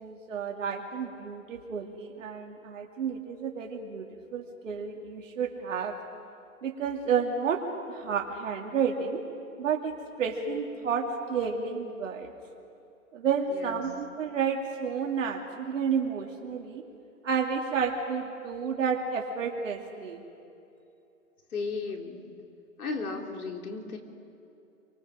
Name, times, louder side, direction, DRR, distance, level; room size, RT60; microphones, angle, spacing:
voice 1, 0.0-4.0 4.3-6.0 6.6-7.6 7.9-9.2 9.6-12.3 13.1-16.8 17.2-20.2, right 6 dB, 60° right, 1 dB, 2.5 m, -31 dB
voice 2, 13.5-13.8 21.5-22.2 22.8-24.0, left 4 dB, 75° left, 2 dB, 3.6 m, -35 dB
29.0 x 23.5 x 5.1 m, 2.7 s
hypercardioid pair, 150°, 44 cm